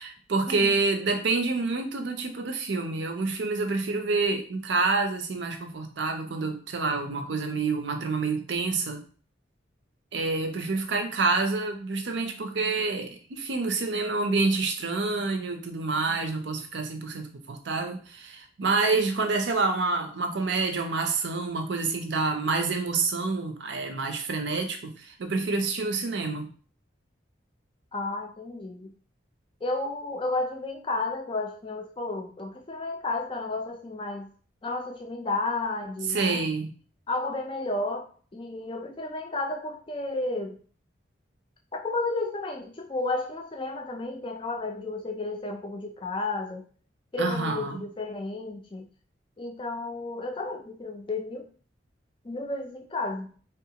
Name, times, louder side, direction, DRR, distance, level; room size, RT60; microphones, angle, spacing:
voice 1, 0.0-9.0 10.1-26.5 36.1-36.7 47.2-47.8, right 3 dB, 75° right, 5 dB, 0.5 m, -28 dB
voice 2, 27.9-28.9 29.6-34.3 34.6-36.4 37.1-40.6 41.7-46.7 47.1-48.9 49.4-51.5 52.2-53.3, left 2 dB, 25° left, 3 dB, 0.4 m, -32 dB
3.5 x 2.4 x 2.8 m, 0.42 s
head